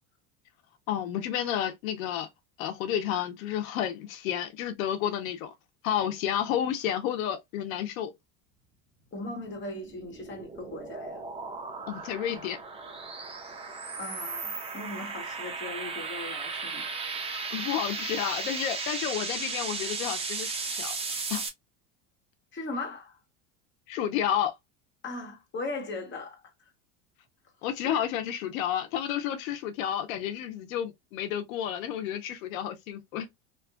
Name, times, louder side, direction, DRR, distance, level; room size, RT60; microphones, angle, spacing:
voice 1, 0.9-2.3 2.6-5.5 5.8-8.1 11.9-12.6 17.5-20.9 21.3-21.4 23.9-24.5 27.6-33.3, left 10 dB, 90° left, 0.7 m, -31 dB
voice 2, 9.1-11.2 14.0-16.9 22.5-23.2 25.0-26.4 27.9-28.0, left 2 dB, 30° left, 1.2 m, -38 dB
sound 1, 9.5-21.5, right 4 dB, 15° right, 0.6 m, -36 dB
2.9 x 2.3 x 2.3 m
supercardioid pair, 125°, 40 cm